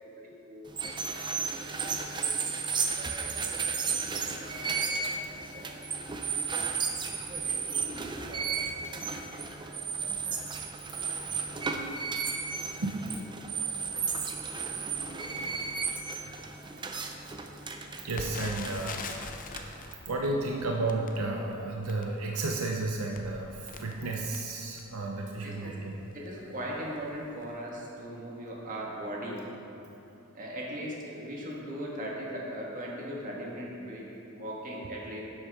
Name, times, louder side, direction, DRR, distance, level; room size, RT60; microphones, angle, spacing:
voice 1, 0.2-1.2 1.5-2.3 3.0-3.6 3.9-5.7 7.3-8.6 8.9-9.0 9.3-9.7 10.0-10.4 25.4-25.8 26.1-29.5 30.3-35.2, equal, 40° right, -3 dB, 1.7 m, -40 dB
sound 1, 0.7-19.9, right 5 dB, 20° right, 0.5 m, -34 dB
voice 2, 18.0-19.0 19.7-25.9, right 2 dB, 80° right, 0 dB, 0.7 m, -33 dB
Crackle, 18.1-25.1 25.7-25.8 26.1-26.3 26.9-27.2 27.4-27.5, left 4 dB, 40° left, 0.6 m, -44 dB
11.0 x 7.5 x 3.6 m, 2.9 s
head